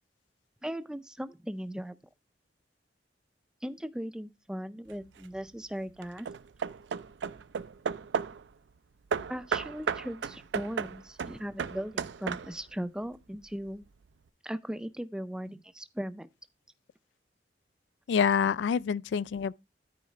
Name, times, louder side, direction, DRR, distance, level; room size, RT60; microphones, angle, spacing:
voice 1, 0.6-2.0 3.6-6.3 9.3-13.9 14.4-16.3, equal, 5° right, 0.4 m, -38 dB
Hammer / Wood, 4.9-5.4 6.0-8.5 9.1-12.8, right 6 dB, 75° right, 0.4 m, -34 dB
voice 2, 18.1-19.5, left 7 dB, 80° left, 0.3 m, -26 dB
12.5 x 4.8 x 3.1 m
head